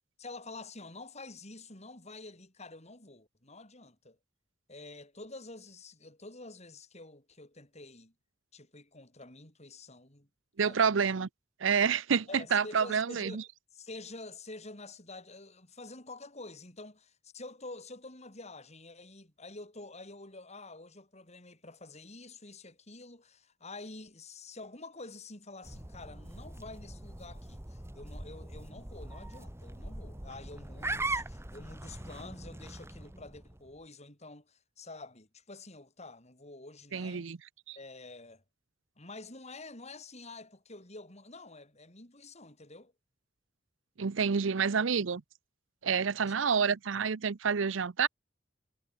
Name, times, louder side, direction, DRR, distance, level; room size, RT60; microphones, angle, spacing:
voice 1, 0.2-4.2 4.7-8.1 8.5-10.3 10.6-11.0 12.3-13.4 13.7-37.3 37.7-38.4 39.0-42.9 46.3-46.4, left 2 dB, 35° left, 7.0 m, -48 dB
voice 2, 10.6-11.3 11.6-13.4 36.9-37.4 37.7-37.8 44.0-45.2 45.8-48.1, right 6 dB, 80° right, 0.6 m, -28 dB
sound 1, 25.6-33.7, right 2 dB, 15° right, 1.4 m, -41 dB
head